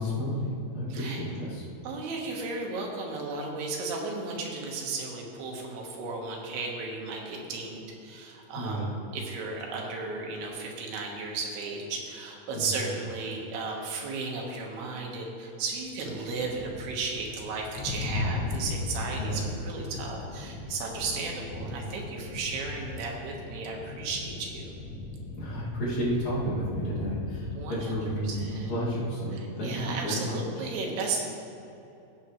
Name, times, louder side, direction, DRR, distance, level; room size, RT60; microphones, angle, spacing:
voice 1, 0.0-1.6 8.5-8.9 12.5-12.6 19.2-19.5 21.6-21.7 25.4-30.4, equal, 50° left, -7 dB, 3.2 m, -31 dB
voice 2, 0.9-1.3 1.8-24.7 27.5-28.0 28.2-28.7 29.3-31.2, right 3 dB, 90° right, 0 dB, 3.4 m, -35 dB
sound 1, 15.8-28.5, left 2 dB, 75° left, 2.8 m, -37 dB
16.0 x 8.1 x 3.1 m, 2.8 s
omnidirectional pair, 4.5 m